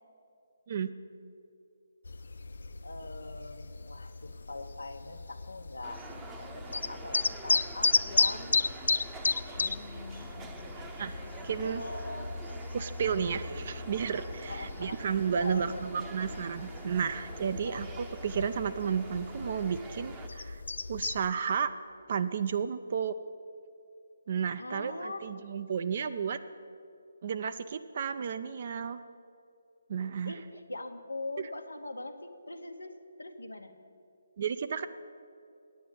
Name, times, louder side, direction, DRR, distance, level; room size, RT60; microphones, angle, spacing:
sound 1, 2.1-21.3, left 4 dB, 70° left, 0.4 m, -35 dB
voice 1, 2.8-8.6 9.5-12.4 14.5-15.0 15.4-15.8 17.6-17.8 24.6-25.2 30.2-33.7, left 2 dB, 85° left, 7 dB, 1.0 m, -43 dB
sound 2, 5.8-20.3, right 4 dB, 15° right, 0.7 m, -47 dB
voice 2, 11.4-11.8 12.7-20.6 20.9-21.7 22.1-23.2 24.3-26.4 27.2-29.0 29.9-30.4 31.4-31.5 34.4-34.9, right 7 dB, 45° right, 11 dB, 0.4 m, -32 dB
9.3 x 8.4 x 8.2 m, 2.5 s
figure-of-eight pair, 150°, 0 cm